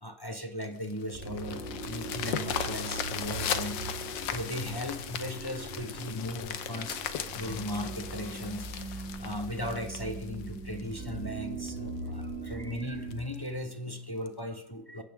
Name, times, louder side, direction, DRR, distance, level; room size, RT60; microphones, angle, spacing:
voice 1, 0.0-3.8 4.2-15.0, left 1 dB, 20° left, 6 dB, 0.6 m, -37 dB
sound 1, 0.6-11.1 11.7-11.8 12.2-12.3 12.6-12.7 13.1-13.4 14.3-14.4, left 9 dB, 90° left, 1.6 m, -37 dB
sound 2, 1.1-13.1, right 3 dB, 10° right, 5.4 m, -40 dB
23.0 x 15.0 x 3.6 m, 0.80 s
omnidirectional pair, 1.9 m